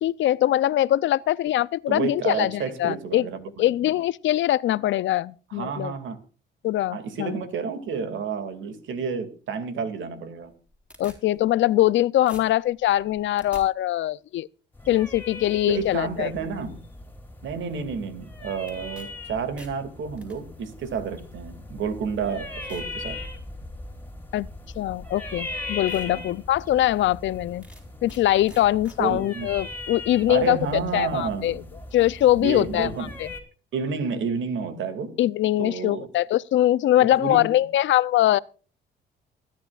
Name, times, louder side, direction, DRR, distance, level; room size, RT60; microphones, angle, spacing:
voice 1, 0.0-3.3 3.6-5.9 6.6-7.4 11.0-14.5 14.9-16.3 24.3-24.5 24.8-27.6 28.0-31.6 31.9-32.9 33.2-33.3 35.2-38.4, left 13 dB, 70° left, 0.5 m, -22 dB
voice 2, 1.9-3.5 5.5-6.2 6.9-10.5 15.7-16.8 17.4-23.2 26.1-26.3 29.0-29.5 30.3-31.7 32.4-33.1 33.7-35.2 35.6-36.1 37.0-37.5, right 5 dB, 75° right, 2.4 m, -30 dB
sound 1, 10.4-12.0 12.3-13.6 18.7-19.1 19.4-20.4 21.2-21.3 22.0-22.1 22.7-22.9 23.4-23.8 24.9-25.0 25.5-25.6 25.9-26.1 26.5-26.6 27.6-28.2 28.5-29.0, equal, 5° right, 4.4 m, -48 dB
sound 2, 14.7-33.4, left 2 dB, 10° left, 3.2 m, -39 dB
28.5 x 10.5 x 2.4 m
cardioid pair, 90°, 20 cm